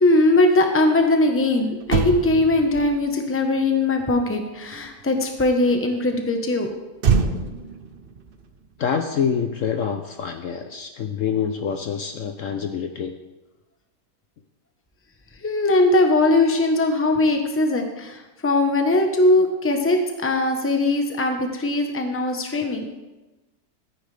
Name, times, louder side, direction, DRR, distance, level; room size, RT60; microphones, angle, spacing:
voice 1, 0.0-6.7 15.4-22.9, left 2 dB, 10° left, 4 dB, 0.8 m, -20 dB
Motor vehicle (road), 1.4-1.5 1.8-5.3 7.0-9.6 9.8-10.1, right 5 dB, 50° right, 0.7 m, -27 dB
voice 2, 8.8-13.1, left 7 dB, 65° left, 6 dB, 0.9 m, -26 dB
14.0 x 9.3 x 3.4 m, 1.1 s
omnidirectional pair, 1.7 m